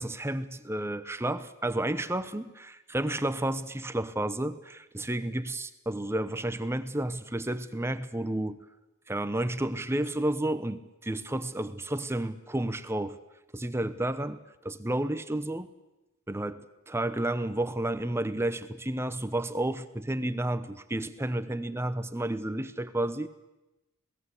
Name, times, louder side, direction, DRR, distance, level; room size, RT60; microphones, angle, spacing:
voice 1, 0.0-8.6 9.1-13.2 13.5-15.7 16.3-23.3, right 1 dB, 10° right, 12 dB, 0.9 m, -31 dB
27.5 x 19.0 x 8.4 m, 1.0 s
head